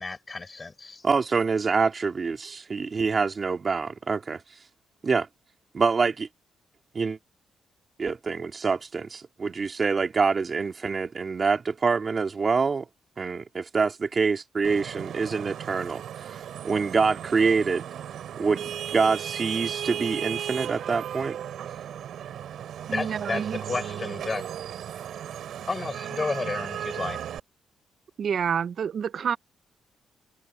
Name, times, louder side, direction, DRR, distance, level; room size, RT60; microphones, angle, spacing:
voice 1, 0.0-1.0 22.9-24.5 25.7-27.2, left 3 dB, 30° left, 6.1 m, -32 dB
voice 2, 1.0-4.4 5.0-5.3 5.7-6.3 6.9-7.2 8.0-12.9 13.2-17.8 18.4-21.4, right 4 dB, 40° right, 2.6 m, -26 dB
Vehicle horn car horn honking / Traffic noise roadway noise, 14.6-27.4, right 10 dB, 75° right, 4.3 m, -36 dB
voice 3, 22.9-23.6 28.2-29.4, right 7 dB, 60° right, 0.4 m, -28 dB
cardioid pair, 85°, 0 cm